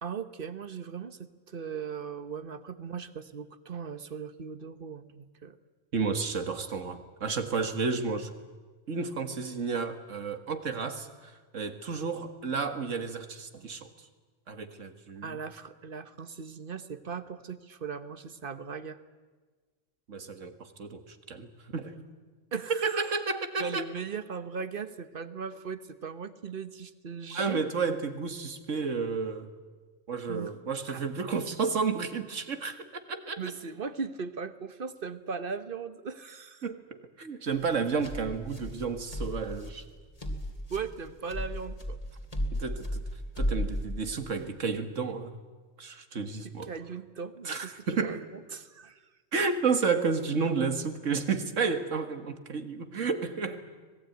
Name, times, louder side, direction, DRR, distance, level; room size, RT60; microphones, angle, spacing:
voice 1, 0.0-5.6 15.2-19.0 22.5-23.2 23.6-27.6 30.3-30.5 30.9-31.0 33.4-36.6 40.7-42.0 46.4-49.0, right 5 dB, 45° right, 12 dB, 1.2 m, -38 dB
voice 2, 5.9-8.3 8.9-13.9 14.5-15.4 20.1-22.0 22.7-23.8 27.3-29.5 30.1-33.4 36.6-39.8 42.5-43.0 43.4-45.3 45.8-46.7 47.4-48.3 49.3-53.6, right 5 dB, 85° right, 8 dB, 2.0 m, -31 dB
sound 1, 37.5-44.4, equal, 30° left, 2.8 m, -35 dB
25.5 x 19.5 x 9.3 m, 1.4 s
omnidirectional pair, 1.3 m